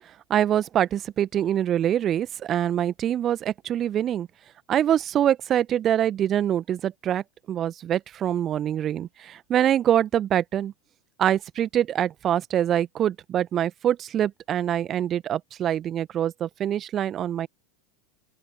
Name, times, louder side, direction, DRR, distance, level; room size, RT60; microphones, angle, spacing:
voice 1, 0.3-4.3 4.7-10.7 11.2-17.5, right 10 dB, 35° right, 1.5 m, -24 dB
open air
figure-of-eight pair, 80°, 0 cm